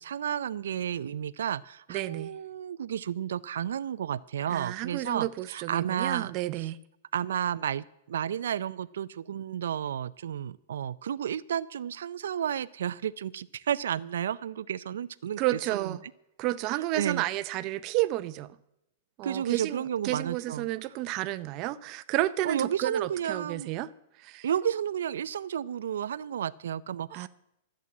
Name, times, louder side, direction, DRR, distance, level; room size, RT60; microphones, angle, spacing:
voice 1, 0.0-6.3 6.6-6.7 7.1-15.4 15.7-16.0 16.9-17.3 19.2-20.7 22.4-23.7 24.4-27.3, right 9 dB, 85° right, 0.5 m, -32 dB
voice 2, 1.9-2.3 4.5-6.8 15.4-16.0 16.4-18.5 19.2-23.9 24.2-24.5 27.1-27.3, right 16 dB, 30° right, 0.6 m, -31 dB
13.5 x 7.5 x 9.5 m
supercardioid pair, 165°, 0 cm